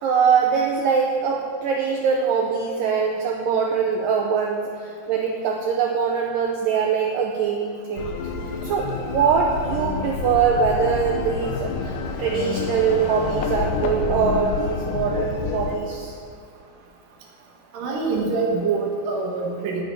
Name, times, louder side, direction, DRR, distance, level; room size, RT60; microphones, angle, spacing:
voice 1, 0.0-8.2 8.6-16.2, right 6 dB, 85° right, 1 dB, 1.9 m, -23 dB
sound 1, 8.0-15.8, left 5 dB, 75° left, 2.0 m, -28 dB
voice 2, 17.7-19.8, right 4 dB, 65° right, -1 dB, 2.8 m, -25 dB
10.0 x 8.0 x 9.3 m, 2.3 s
omnidirectional pair, 4.9 m